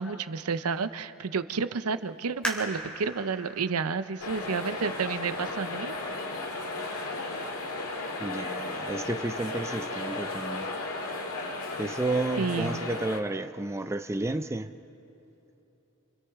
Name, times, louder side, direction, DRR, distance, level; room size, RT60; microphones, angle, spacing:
voice 1, 0.0-5.9 12.4-12.8, right 5 dB, 85° right, 12 dB, 0.7 m, -30 dB
sound 1, 2.4-5.8 6.4-6.5 7.1-7.5 7.9-8.0, right 1 dB, 5° left, 3.1 m, -39 dB
sound 2, 4.2-13.2, left 2 dB, 85° left, 1.9 m, -35 dB
voice 2, 8.2-10.7 11.8-14.7, right 2 dB, 10° right, 8 dB, 0.4 m, -31 dB
28.5 x 27.5 x 3.6 m, 3.0 s
head